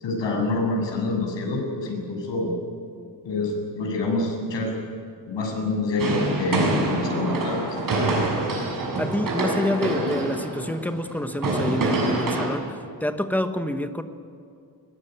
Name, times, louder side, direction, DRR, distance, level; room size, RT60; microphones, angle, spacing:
voice 1, 0.0-2.5 3.2-4.7 5.3-7.7, left 2 dB, 85° left, 0 dB, 7.7 m, -26 dB
sound 1, 6.0-12.5, right 2 dB, 50° right, 6.8 m, -26 dB
voice 2, 9.0-14.0, left 1 dB, 5° left, 8 dB, 1.2 m, -27 dB
22.0 x 20.5 x 9.3 m, 2.5 s
wide cardioid pair, 155°, 42 cm